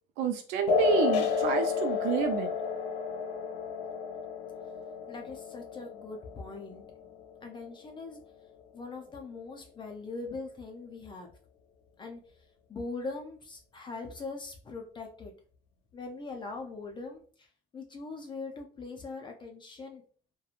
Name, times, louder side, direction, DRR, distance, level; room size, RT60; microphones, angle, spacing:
voice 1, 0.2-2.5, right 7 dB, 75° right, 5 dB, 0.4 m, -29 dB
sound 1, 0.7-7.7, left 5 dB, 85° left, 0.7 m, -31 dB
voice 2, 5.1-6.8 7.4-8.2 8.7-11.3 12.0-12.2 12.7-15.3 15.9-17.5 17.7-20.0, left 3 dB, 25° left, 2 dB, 0.4 m, -41 dB
2.9 x 2.2 x 2.4 m, 0.43 s
cardioid pair, 135°, 19 cm